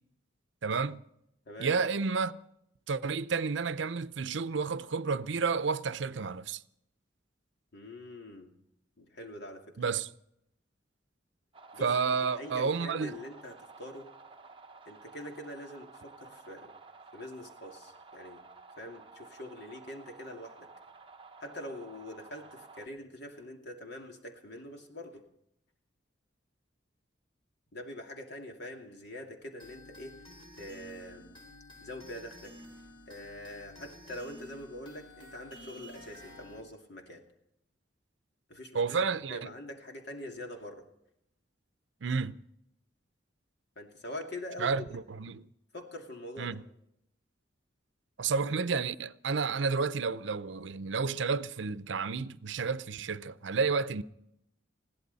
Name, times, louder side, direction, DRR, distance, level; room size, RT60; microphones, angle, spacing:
voice 1, 0.6-1.0 1.6-2.4 2.9-6.6 9.8-10.1 11.8-13.2 38.7-39.5 42.0-42.4 44.6-45.5 46.4-46.6 48.2-54.0, right 5 dB, 70° right, 0.6 m, -31 dB
voice 2, 7.7-8.5 9.0-9.8 11.7-14.1 14.9-16.7 17.1-18.4 18.8-20.7 21.4-25.2 27.7-30.2 30.6-31.4 31.8-32.6 33.1-37.2 38.5-40.9 43.8-45.0 45.7-46.6, left 1 dB, 60° left, 2.5 m, -44 dB
sound 1, 11.5-22.9, right 4 dB, 30° right, 1.0 m, -53 dB
sound 2, 29.6-36.6, left 1 dB, 25° left, 3.3 m, -51 dB
21.0 x 16.0 x 4.1 m
head